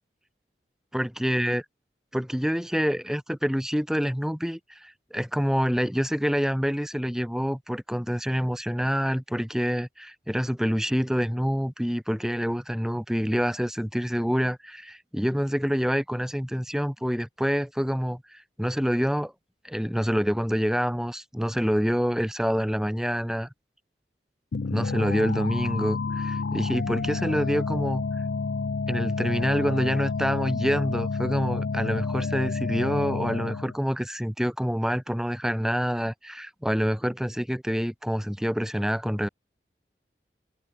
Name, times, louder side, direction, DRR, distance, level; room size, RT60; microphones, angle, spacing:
voice 1, 0.9-1.6 2.1-19.3 19.6-23.5 24.7-28.0 28.9-39.3, equal, 5° right, 1.0 m, -27 dB
sound 1, 24.5-33.8, left 4 dB, 75° left, 0.5 m, -29 dB
head